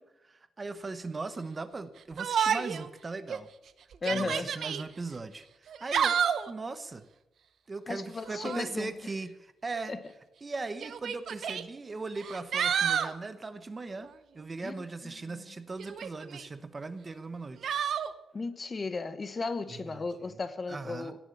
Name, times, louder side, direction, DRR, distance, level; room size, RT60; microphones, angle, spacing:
voice 1, 0.0-3.5 4.1-6.2 6.5-7.0 7.7-9.9 10.4-17.8 19.7-20.0 20.7-21.1, right 3 dB, 25° right, 1.0 m, -39 dB
Yell, 2.2-2.9 3.3-3.4 3.9-4.8 5.7-6.5 8.3-8.7 9.8-9.9 10.8-11.6 12.2-13.1 15.8-16.5 17.6-18.1, right 8 dB, 65° right, 0.9 m, -30 dB
voice 2, 4.0-4.5 7.9-8.9 9.9-10.0 14.6-15.5 18.3-21.2, left 3 dB, 30° left, 1.1 m, -35 dB
17.5 x 7.4 x 9.7 m
wide cardioid pair, 140°, 0 cm